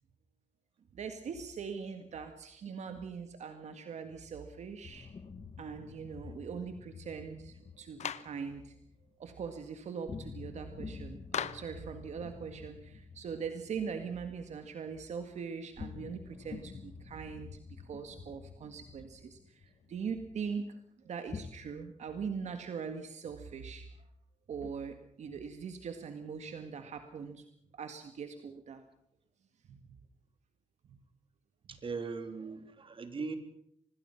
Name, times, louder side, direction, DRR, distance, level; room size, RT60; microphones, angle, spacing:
voice 1, 0.9-5.1 5.6-8.7 9.2-17.5 17.8-20.8 21.0-23.9 24.5-27.4 27.7-28.8 29.7-30.0 30.9-31.0 31.7-31.8, right 6 dB, 75° right, 7 dB, 1.9 m, -41 dB
sound 1, 4.8-9.3 10.1-15.2 15.6-20.3 21.3-21.5, left 5 dB, 45° left, 1.6 m, -49 dB
Clapping, 8.0-8.4 11.3-11.8, left 9 dB, 75° left, 0.9 m, -36 dB
voice 2, 31.7-33.4, right 4 dB, 50° right, 8 dB, 3.4 m, -39 dB
26.0 x 20.0 x 5.9 m, 0.70 s
cardioid pair, 100°, 12 cm